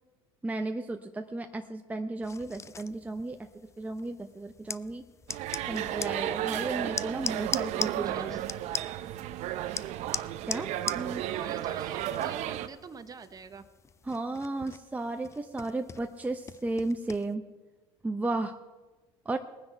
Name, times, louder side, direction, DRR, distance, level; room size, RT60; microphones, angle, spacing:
voice 1, 0.4-3.4 3.8-5.0 5.7-8.4 10.5-10.7 14.0-17.4 18.0-18.5 19.3-19.4, right 2 dB, 10° right, 5 dB, 0.8 m, -34 dB
sound 1, 2.2-17.3, left 6 dB, 20° left, 0.4 m, -41 dB
sound 2, 5.3-12.7, right 12 dB, 60° right, 0.8 m, -33 dB
voice 2, 8.0-8.4 10.8-13.6, right 5 dB, 30° right, 11 dB, 1.0 m, -43 dB
20.5 x 9.5 x 4.5 m, 1.3 s
supercardioid pair, 85°, 13 cm